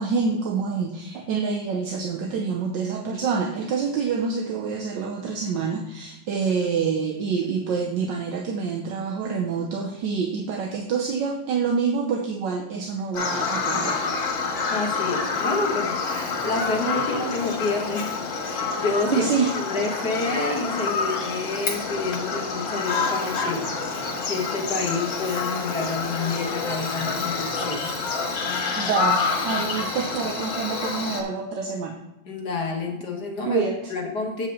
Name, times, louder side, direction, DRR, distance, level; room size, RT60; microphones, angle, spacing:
voice 1, 0.0-14.0 19.1-19.5 22.0-22.1 23.0-23.4 24.0-24.3 26.2-26.3 26.6-26.9 27.6-27.9 28.3-32.0 33.5-33.8, right 5 dB, 70° right, 2 dB, 1.5 m, -27 dB
Bird vocalization bird call bird song, 13.1-31.2, left 4 dB, 80° left, 2.2 m, -27 dB
voice 2, 14.7-23.7 24.3-27.9 32.3-34.5, left 3 dB, 60° left, 1 dB, 1.9 m, -29 dB
8.7 x 5.0 x 5.3 m, 0.92 s
omnidirectional pair, 2.1 m